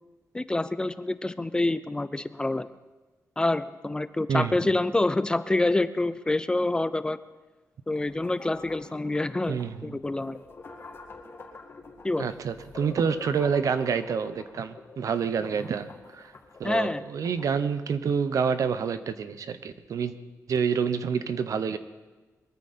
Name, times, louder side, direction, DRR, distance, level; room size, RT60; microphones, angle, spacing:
voice 1, 0.3-2.7 3.4-7.2 7.9-10.4 12.0-12.3 16.6-17.0, left 2 dB, 15° left, 14 dB, 0.4 m, -27 dB
sound 1, 7.9-17.5, left 3 dB, 40° left, 2.3 m, -46 dB
voice 2, 9.5-10.0 12.2-16.3 16.6-20.1 20.5-21.8, right 6 dB, 70° right, 12 dB, 0.9 m, -28 dB
22.0 x 14.0 x 4.3 m, 1.2 s
wide cardioid pair, 160°, 6 cm